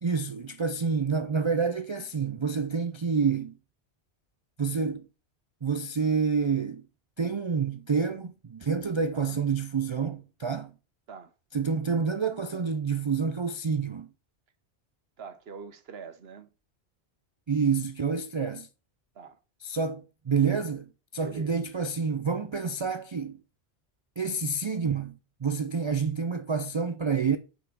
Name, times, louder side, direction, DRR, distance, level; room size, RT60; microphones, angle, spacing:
voice 1, 0.0-3.5 4.6-5.0 5.6-6.8 7.2-10.7 11.5-14.1 17.5-18.7 19.6-23.4 24.2-27.4, right 5 dB, 45° right, 0.4 m, -28 dB
voice 2, 15.2-16.5 19.1-19.4 21.2-21.6, right 5 dB, 65° right, 1.2 m, -44 dB
5.9 x 5.5 x 6.1 m
omnidirectional pair, 1.1 m